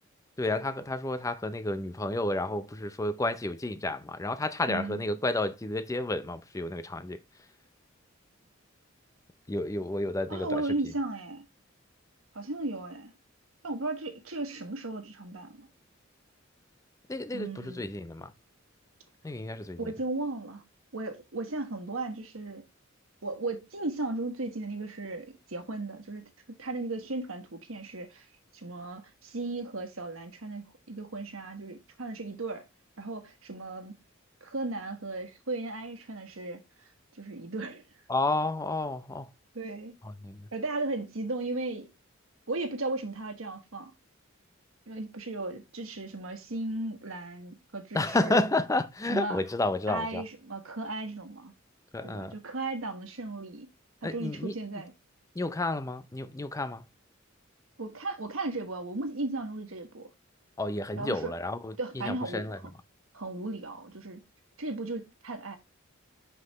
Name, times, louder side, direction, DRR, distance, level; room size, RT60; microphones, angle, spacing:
voice 1, 0.4-7.2 9.5-10.6 17.1-18.3 19.2-19.9 38.1-39.3 40.0-40.5 47.9-50.2 51.9-52.4 54.0-54.5 55.3-56.9 60.6-62.6, left 2 dB, 15° left, 0.5 m, -31 dB
voice 2, 4.7-5.0 10.3-11.4 12.3-13.1 13.6-15.7 17.3-17.9 19.8-20.6 20.9-22.6 23.2-28.3 28.5-32.6 33.0-33.9 34.4-36.6 37.2-37.8 39.5-39.9 40.5-41.9 42.5-43.9 44.9-48.4 49.1-49.4 49.9-51.5 52.0-53.7 54.1-54.9 57.8-60.1 61.0-61.3 61.8-62.4 63.1-64.2 64.6-65.6, right 2 dB, 90° right, 1.4 m, -36 dB
5.8 x 5.5 x 3.0 m
head